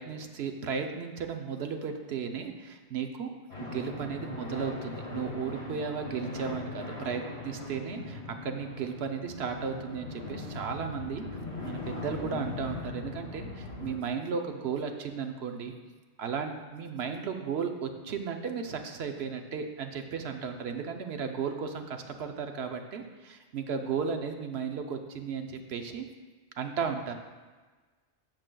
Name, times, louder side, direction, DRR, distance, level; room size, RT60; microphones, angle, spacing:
voice 1, 0.0-3.3 3.6-11.2 11.6-15.7 16.2-26.1 26.6-27.1, right 6 dB, 65° right, 5 dB, 0.9 m, -35 dB
sound 1, 3.5-13.9, left 3 dB, 65° left, 2.5 m, -40 dB
12.0 x 6.6 x 2.2 m, 1.3 s
omnidirectional pair, 1.2 m